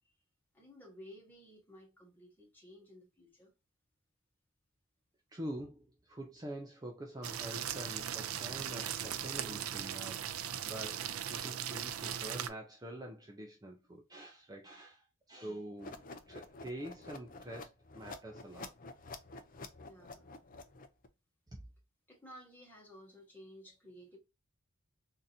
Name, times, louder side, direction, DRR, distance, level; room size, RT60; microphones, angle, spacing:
voice 1, 0.5-3.5 15.4-15.7 19.8-20.3 22.1-24.2, equal, 10° left, 1.5 m, -55 dB
voice 2, 5.3-10.3 10.6-18.7 21.5-21.6, right 1 dB, 20° right, 0.6 m, -46 dB
sound 1, 7.2-12.5, right 10 dB, 90° right, 0.4 m, -39 dB
sound 2, 15.8-21.1, left 3 dB, 40° left, 0.5 m, -49 dB
3.7 x 2.7 x 2.6 m
head